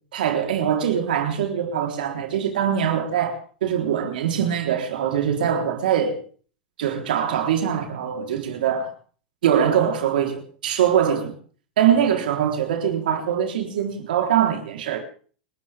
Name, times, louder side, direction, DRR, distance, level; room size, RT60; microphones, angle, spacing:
voice 1, 0.1-3.4 3.6-6.2 6.8-8.9 9.4-11.4 11.8-15.0, right 9 dB, 80° right, 3.8 m, -22 dB
29.5 x 12.5 x 3.6 m
hypercardioid pair, 120°, 5 cm